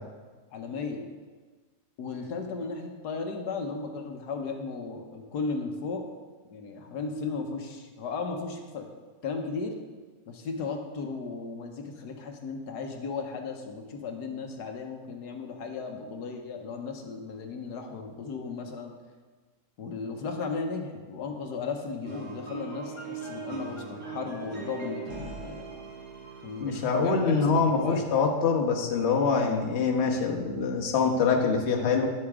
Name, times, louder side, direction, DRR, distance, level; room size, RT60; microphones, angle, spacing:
voice 1, 0.5-1.1 2.0-6.0 6.5-8.9 9.2-9.8 10.3-18.9 19.8-25.7 26.4-28.0, left 4 dB, 75° left, 4 dB, 1.4 m, -35 dB
sound 1, 22.0-27.9, right 5 dB, 45° right, 2.1 m, -41 dB
voice 2, 26.6-32.1, left 5 dB, 45° left, 0 dB, 1.3 m, -25 dB
10.5 x 8.1 x 3.6 m, 1.4 s
omnidirectional pair, 1.8 m